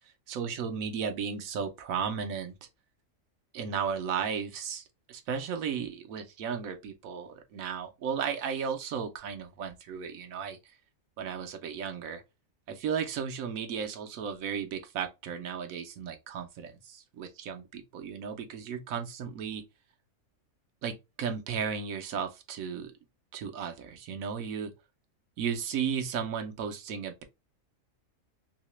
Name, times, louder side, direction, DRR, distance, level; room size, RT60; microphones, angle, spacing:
voice 1, 0.3-2.5 3.5-10.8 11.2-12.2 12.7-19.6 20.8-22.9 23.3-24.7 25.4-27.2, right 7 dB, 90° right, 1.1 m, -35 dB
3.1 x 2.8 x 3.0 m
omnidirectional pair, 1.4 m